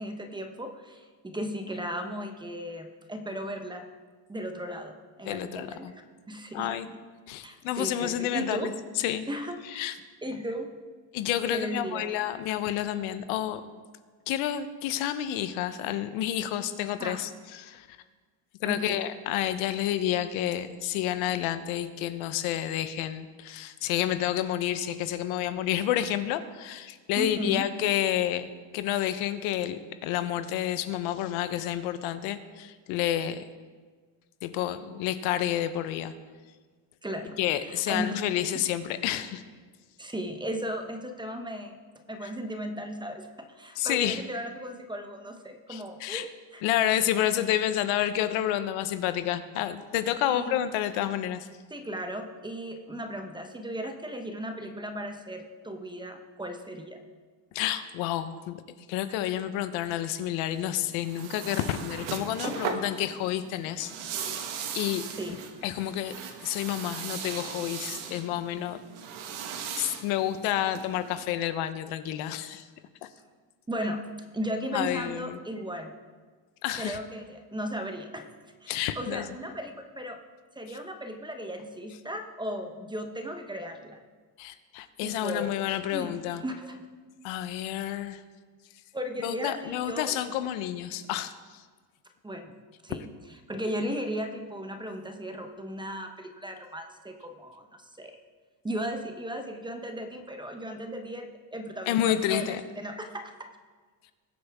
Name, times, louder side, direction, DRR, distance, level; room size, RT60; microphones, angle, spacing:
voice 1, 0.0-3.9 4.3-5.9 6.3-7.0 7.4-8.7 9.3-9.9 10.2-10.7 11.5-12.1 17.0-17.2 18.6-19.1 27.2-27.7 37.0-38.1 38.5-38.7 40.0-41.8 42.1-46.3 46.5-46.6 47.2-47.3 50.3-50.6 51.7-57.0 62.4-62.6 65.1-65.4 73.7-74.0 74.3-76.0 76.7-78.3 78.6-80.2 80.5-84.0 85.0-85.6 85.9-86.8 88.9-90.2 92.2-92.5 92.8-98.1 98.6-103.5, equal, 10° right, 5 dB, 0.8 m, -36 dB
voice 2, 5.2-5.9 6.5-6.9 7.3-9.2 9.7-9.9 11.1-13.6 14.3-17.9 18.6-28.5 28.7-33.4 34.4-36.1 37.4-39.4 43.8-44.2 45.7-46.3 46.6-51.5 57.5-58.6 58.9-64.4 64.7-65.1 65.6-66.1 66.4-68.8 69.8-72.6 74.7-75.4 76.6-77.0 78.7-79.2 84.4-86.4 87.2-88.2 89.2-91.3 101.9-102.6, left 12 dB, 65° left, 11 dB, 0.9 m, -29 dB
sound 1, 60.5-71.2, right 7 dB, 70° right, 1.6 m, -38 dB
20.5 x 8.0 x 3.5 m, 1.5 s
cardioid pair, 135°, 50 cm